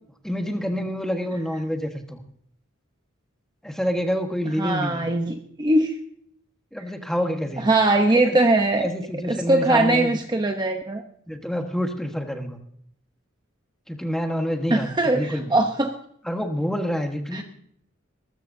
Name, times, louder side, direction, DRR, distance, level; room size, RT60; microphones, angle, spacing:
voice 1, 0.2-2.2 3.6-5.1 6.7-7.7 8.1-8.4 8.8-10.2 11.3-12.6 13.9-15.6 16.2-17.4, equal, ahead, 4 dB, 1.3 m, -27 dB
voice 2, 4.5-5.9 7.6-8.9 9.3-11.0 14.7-15.9 17.3-17.4, right 2 dB, 20° right, 4 dB, 0.8 m, -21 dB
21.0 x 13.5 x 2.7 m, 0.66 s
head